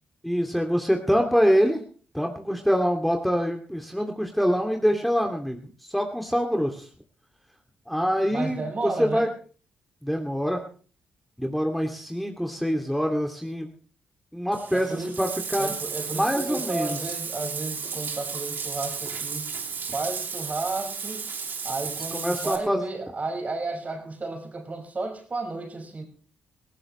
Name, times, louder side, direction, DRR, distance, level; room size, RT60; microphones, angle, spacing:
voice 1, 0.2-1.8 2.1-5.6 5.9-6.9 7.9-9.3 10.0-10.6 11.4-13.7 14.3-15.7 16.1-17.0 22.1-22.8, equal, ahead, 3 dB, 2.6 m, -25 dB
voice 2, 8.3-9.3 14.7-15.2 15.6-19.5 19.9-21.2 21.6-26.0, right 3 dB, 35° right, 4 dB, 5.5 m, -33 dB
Bathtub (filling or washing), 14.5-22.6, right 5 dB, 55° right, 3.1 m, -33 dB
19.5 x 17.0 x 3.3 m, 0.42 s
hypercardioid pair, 40°, 4 cm